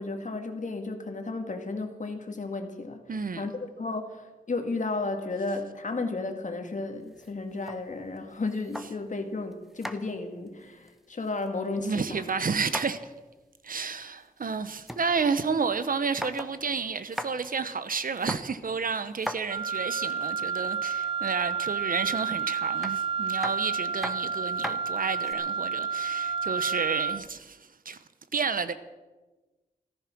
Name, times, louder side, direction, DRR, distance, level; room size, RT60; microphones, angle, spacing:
voice 1, 0.0-3.0 3.4-12.2, left 3 dB, 55° left, 2.0 m, -33 dB
voice 2, 3.1-3.5 11.8-13.1 13.6-28.0 28.3-28.7, right 5 dB, 70° right, 1.0 m, -31 dB
sound 1, 7.0-9.2 9.5-11.7 12.0-13.1 13.4-13.5 13.7-15.0 15.4-15.5 15.9-16.6 16.9-17.5 18.1-20.1 21.0-21.5 22.8-25.3, equal, ahead, 1.1 m, -40 dB
Wind instrument woodwind instrument, 19.5-27.3, right 6 dB, 35° right, 0.5 m, -30 dB
14.0 x 14.0 x 6.1 m
wide cardioid pair, 90°, 15 cm